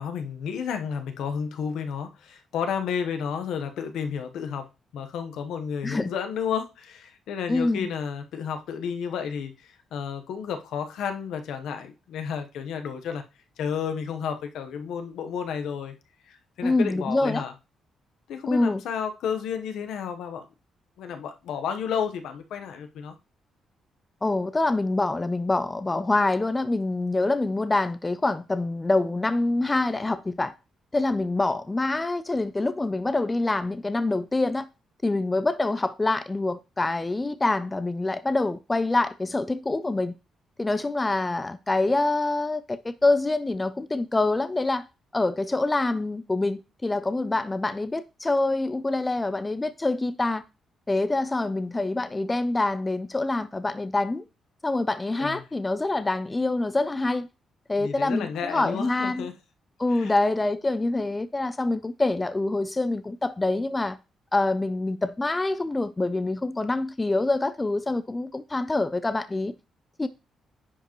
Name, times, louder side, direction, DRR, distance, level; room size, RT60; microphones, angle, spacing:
voice 1, 0.0-4.7 4.9-13.2 13.6-15.9 16.2-17.5 18.3-20.4 21.0-23.1 55.2-55.4 57.8-59.3 59.9-60.1, left 7 dB, 85° left, 1.0 m, -32 dB
voice 2, 7.5-7.9 16.6-17.4 18.5-18.8 24.2-30.5 30.9-34.7 35.0-40.1 40.6-44.9 45.1-50.4 50.9-54.2 54.6-57.3 57.7-59.3 59.8-64.0 64.3-69.5 70.0-70.1, left 2 dB, 15° left, 0.4 m, -25 dB
10.0 x 4.9 x 3.0 m
cardioid pair, 145°, 0 cm